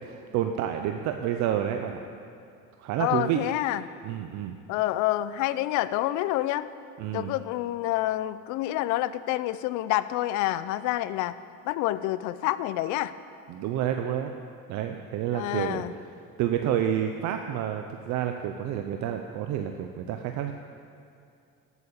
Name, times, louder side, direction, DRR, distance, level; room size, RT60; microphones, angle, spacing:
voice 1, 0.0-2.0 2.8-3.4 4.0-4.6 7.0-7.4 13.5-14.3 14.7-16.0 16.4-20.5, right 10 dB, 65° right, 6 dB, 0.7 m, -29 dB
voice 2, 3.0-3.8 4.7-6.7 7.1-11.4 11.6-13.1 15.3-15.9, left 15 dB, 75° left, 15 dB, 0.5 m, -28 dB
12.0 x 8.2 x 7.2 m, 2.4 s
cardioid pair, 130°, 30 cm